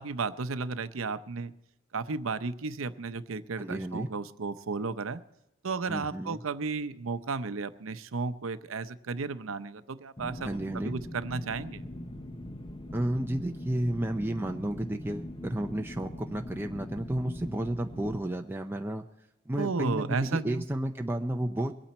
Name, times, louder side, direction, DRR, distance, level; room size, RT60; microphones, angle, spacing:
voice 1, 0.0-1.5 1.9-5.2 5.6-11.8 19.6-20.6, right 4 dB, 75° right, 12 dB, 0.7 m, -33 dB
voice 2, 3.6-4.1 5.9-6.4 10.4-11.0 12.9-19.0 19.5-21.7, right 1 dB, 10° right, 3 dB, 0.5 m, -32 dB
sound 1, 10.2-18.2, left 1 dB, 25° left, 0.8 m, -42 dB
22.5 x 9.0 x 4.3 m, 0.87 s
head